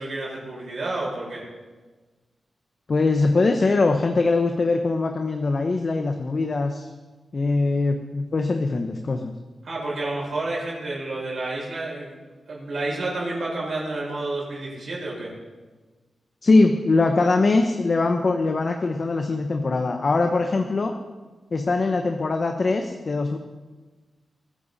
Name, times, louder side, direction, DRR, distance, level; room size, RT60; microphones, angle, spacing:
voice 1, 0.0-1.4 9.6-12.2 12.5-15.3, right 2 dB, 60° right, -4 dB, 6.4 m, -30 dB
voice 2, 2.9-6.9 7.3-9.3 16.4-20.9 21.5-23.4, left 3 dB, 45° left, 4 dB, 1.1 m, -22 dB
21.0 x 14.0 x 4.2 m, 1.3 s
wide cardioid pair, 120°, 0 cm